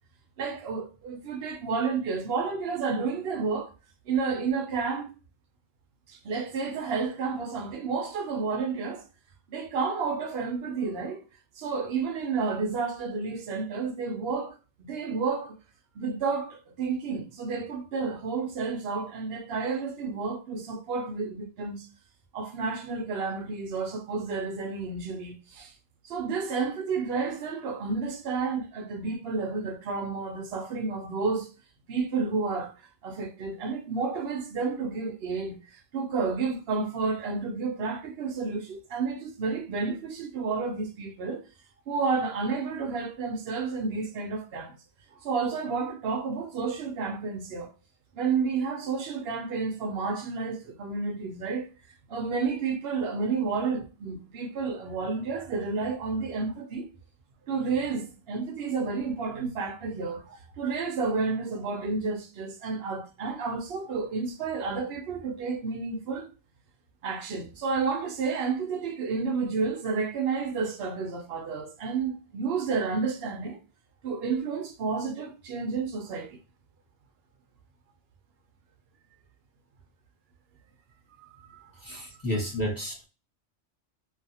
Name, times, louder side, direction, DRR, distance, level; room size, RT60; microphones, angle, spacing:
voice 1, 0.4-3.7 4.1-5.2 6.1-9.1 9.5-11.2 11.6-15.6 15.9-21.9 22.3-25.7 26.0-31.5 31.9-32.8 33.0-41.4 41.9-44.8 45.1-47.7 48.1-51.7 52.1-56.9 57.5-66.3 67.0-73.6 74.0-76.4 81.2-81.7, right 4 dB, 60° right, 0.8 m, -31 dB
voice 2, 81.8-83.1, equal, 15° left, 1.0 m, -31 dB
2.7 x 2.4 x 2.7 m
omnidirectional pair, 1.3 m